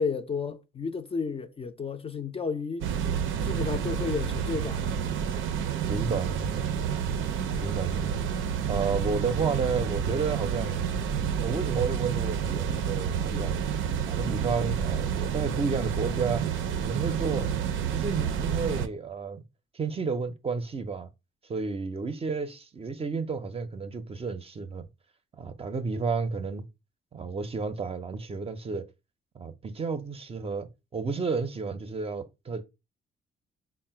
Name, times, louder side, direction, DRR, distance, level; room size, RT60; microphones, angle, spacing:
voice 1, 0.0-2.9 3.4-4.8 13.3-13.6, left 5 dB, 30° left, 0.4 m, -32 dB
sound 1, 2.8-18.9, right 8 dB, 85° right, 0.5 m, -29 dB
voice 2, 5.9-6.7 7.6-8.2 8.7-10.8 11.4-13.7 14.1-16.4 16.8-17.5 17.9-19.4 19.7-21.1 21.5-24.9 25.4-26.7 27.1-28.9 29.3-32.6, right 4 dB, 30° right, 0.5 m, -31 dB
3.7 x 2.1 x 4.3 m
cardioid pair, 90°, 20 cm